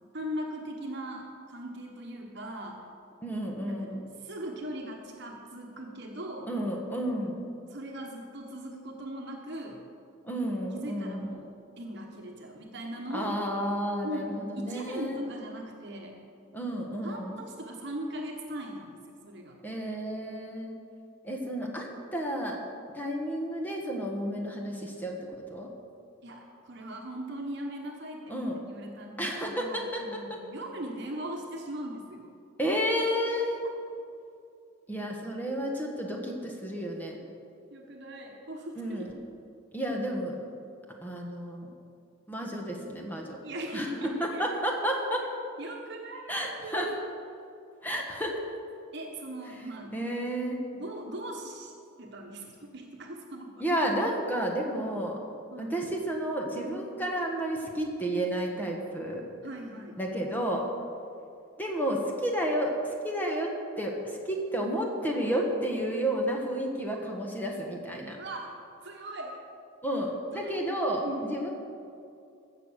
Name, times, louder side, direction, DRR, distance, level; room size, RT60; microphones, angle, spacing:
voice 1, 0.1-2.8 3.7-6.5 7.7-9.8 10.7-13.4 14.0-16.2 17.0-19.6 21.6-21.8 26.2-32.3 37.7-39.1 43.4-44.4 45.6-47.0 48.9-50.0 50.7-51.7 52.0-53.6 55.5-55.8 59.4-60.0 68.2-69.4 70.3-70.6 71.0-71.4, right 1 dB, 55° right, 1 dB, 1.2 m, -40 dB
voice 2, 3.2-4.0 6.5-7.4 10.2-11.3 13.1-15.2 16.5-17.5 19.6-20.7 21.2-22.6 22.9-25.7 28.3-28.6 29.2-30.4 32.6-33.6 34.9-37.2 38.8-39.1 39.7-40.4 41.0-41.7 42.3-43.4 43.7-45.2 46.3-46.9 47.8-48.4 49.9-50.6 53.6-55.2 55.6-59.2 60.0-60.7 61.6-68.2 69.8-71.5, equal, 10° left, 0 dB, 1.4 m, -31 dB
16.0 x 6.8 x 6.4 m, 2.5 s
head